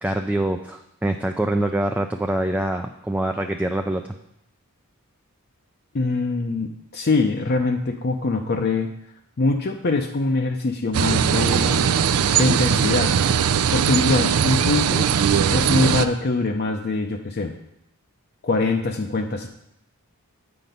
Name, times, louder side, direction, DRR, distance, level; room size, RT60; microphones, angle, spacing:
voice 1, 0.0-4.0, right 1 dB, 5° right, 4 dB, 0.3 m, -24 dB
voice 2, 5.9-8.9 9.4-11.9 12.3-13.1 13.7-15.1 15.5-17.5 18.4-19.5, left 3 dB, 45° left, 3 dB, 0.6 m, -23 dB
sound 1, 10.9-16.0, right 7 dB, 80° right, 0.4 m, -20 dB
8.3 x 5.9 x 5.3 m, 0.79 s
head